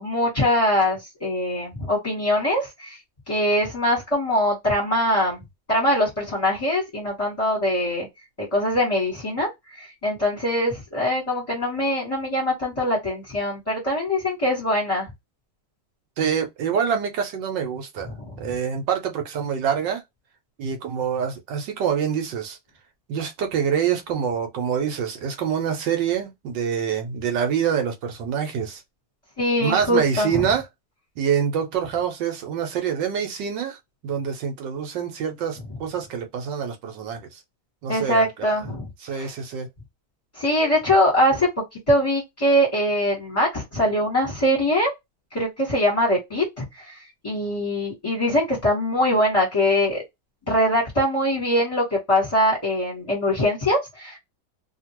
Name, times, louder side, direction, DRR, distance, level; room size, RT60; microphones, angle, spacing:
voice 1, 0.0-3.0 3.3-5.4 5.7-8.1 8.5-15.1 29.4-30.4 37.9-38.9 39.1-39.3 40.4-41.5 41.9-44.9 45.3-47.0 47.2-50.0 50.5-54.2, left 1 dB, 20° left, 1.2 m, -22 dB
voice 2, 16.2-20.0 20.6-22.6 23.1-28.8 29.6-30.6 31.2-33.8 34.0-37.4 37.8-38.5 39.0-39.7, right 7 dB, 70° right, 1.3 m, -26 dB
2.8 x 2.7 x 2.9 m
omnidirectional pair, 2.2 m